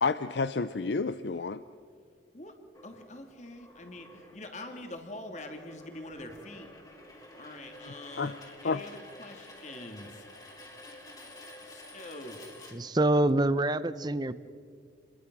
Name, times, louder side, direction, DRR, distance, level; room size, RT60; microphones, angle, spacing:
voice 1, 0.0-1.6 7.9-8.3 8.6-8.8, left 4 dB, 75° left, 13 dB, 0.6 m, -30 dB
sound 1, 2.7-13.3, left 1 dB, 20° left, 3.2 m, -50 dB
voice 2, 2.8-6.7 7.4-10.3 11.7-12.4, left 1 dB, 40° left, 5 dB, 2.6 m, -44 dB
voice 3, 12.7-14.3, right 1 dB, 25° right, 15 dB, 0.7 m, -26 dB
30.0 x 22.5 x 6.2 m, 2.1 s
head